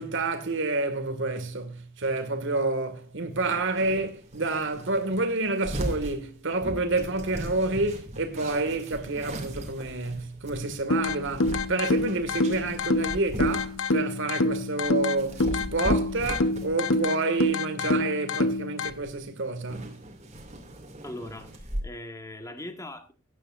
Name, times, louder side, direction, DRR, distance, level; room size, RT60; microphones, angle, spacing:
voice 1, 0.0-19.9, right 2 dB, 60° right, 2.0 m, -29 dB
sound 1, 2.0-2.2 3.4-14.1 14.4-17.0 17.3-17.7 18.5-18.6 18.9-19.3 19.5-21.8, equal, 30° right, 2.6 m, -38 dB
sound 2, 10.9-18.9, left 2 dB, 75° left, 1.0 m, -27 dB
voice 2, 21.0-23.1, left 1 dB, 15° left, 1.5 m, -40 dB
16.5 x 10.0 x 2.6 m
head